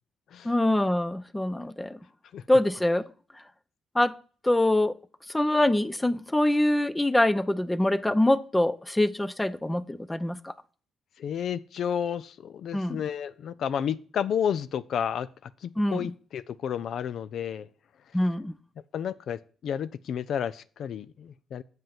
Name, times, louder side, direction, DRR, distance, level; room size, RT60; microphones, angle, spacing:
voice 1, 0.4-2.0 2.5-3.0 3.9-4.2 4.4-5.0 5.3-10.5 12.7-13.0 15.8-16.1 18.1-18.5, left 1 dB, 10° left, 0.5 m, -24 dB
voice 2, 11.2-17.7 18.9-21.6, left 8 dB, 65° left, 0.4 m, -31 dB
7.5 x 5.5 x 5.8 m
cardioid pair, 90°, 0 cm